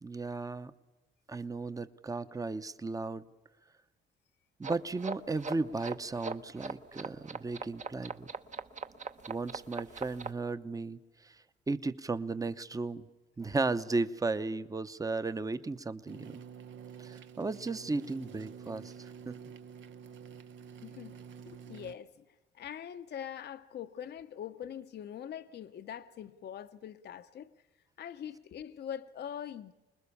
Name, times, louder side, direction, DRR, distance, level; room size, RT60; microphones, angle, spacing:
voice 1, 0.0-0.7 1.3-3.2 4.6-8.3 9.3-11.4 11.7-13.1 13.4-16.4 17.0-19.4, right 3 dB, 15° right, 0.8 m, -35 dB
sound 1, 4.6-10.3, right 4 dB, 40° right, 0.9 m, -40 dB
sound 2, 16.1-22.0, right 7 dB, 70° right, 1.0 m, -48 dB
voice 2, 20.8-21.2 21.4-22.2 22.5-27.5 28.0-29.7, left 9 dB, 55° left, 0.7 m, -43 dB
26.0 x 20.5 x 7.1 m
cardioid pair, 90°, 20 cm